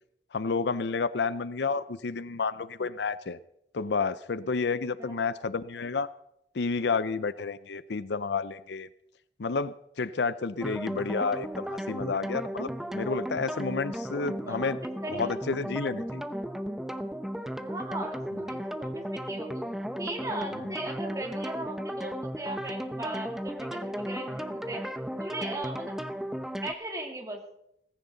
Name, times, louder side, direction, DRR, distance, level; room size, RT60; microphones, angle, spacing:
voice 1, 0.3-3.4 3.7-6.1 6.5-8.9 9.4-14.8 15.1-16.2, left 4 dB, 75° left, 15 dB, 0.6 m, -30 dB
sound 1, 10.6-26.7, equal, ahead, 0.7 m, -35 dB
voice 2, 14.5-15.5 17.6-19.7 20.0-24.8 25.2-25.9 26.6-27.4, right 1 dB, 20° right, 1 dB, 2.7 m, -38 dB
18.0 x 15.5 x 3.9 m, 0.76 s
head